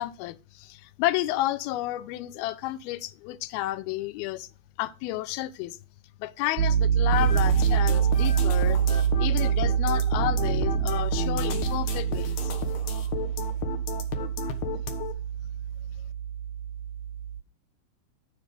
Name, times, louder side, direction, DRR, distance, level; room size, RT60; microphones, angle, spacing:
voice 1, 0.0-4.5 4.8-5.8 6.2-12.5, left 15 dB, 85° left, 2.6 m, -31 dB
Piano, 6.6-17.4, right 9 dB, 70° right, 2.1 m, -26 dB
sound 1, 7.1-15.1, left 6 dB, 60° left, 2.3 m, -33 dB
12.0 x 5.0 x 6.8 m
omnidirectional pair, 4.3 m